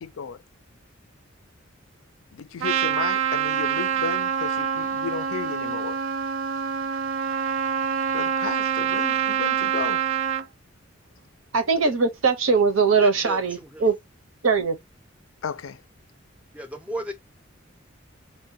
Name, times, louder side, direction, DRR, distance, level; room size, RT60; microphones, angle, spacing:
voice 1, 0.0-0.4 2.3-6.0 8.1-10.0 15.4-15.8, left 6 dB, 85° left, 0.4 m, -33 dB
Trumpet, 2.6-10.4, right 8 dB, 75° right, 0.3 m, -26 dB
voice 2, 11.5-13.9 14.4-14.8, right 4 dB, 90° right, 0.7 m, -21 dB
voice 3, 13.0-13.9 16.5-17.1, equal, 5° right, 0.5 m, -35 dB
4.1 x 2.2 x 2.7 m
head